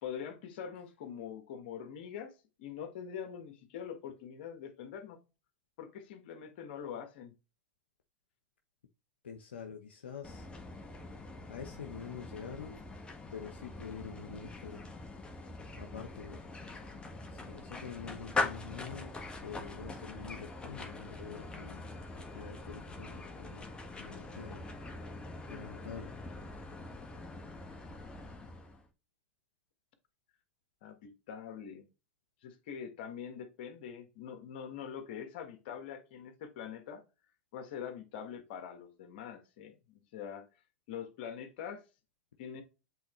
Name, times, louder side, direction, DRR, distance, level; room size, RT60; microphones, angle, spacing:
voice 1, 0.0-5.2 5.8-7.3 30.8-31.9 32.4-37.0 37.5-40.5 40.9-41.8 42.4-42.6, left 8 dB, 65° left, 1.5 m, -44 dB
voice 2, 9.2-10.5 11.5-12.8 13.3-14.8 15.8-16.4 17.3-19.1 19.4-24.7 25.5-26.1, left 6 dB, 85° left, 0.8 m, -46 dB
sound 1, 10.2-28.9, left 2 dB, 15° left, 1.4 m, -43 dB
8.0 x 3.9 x 3.1 m
hypercardioid pair, 95°, 6 cm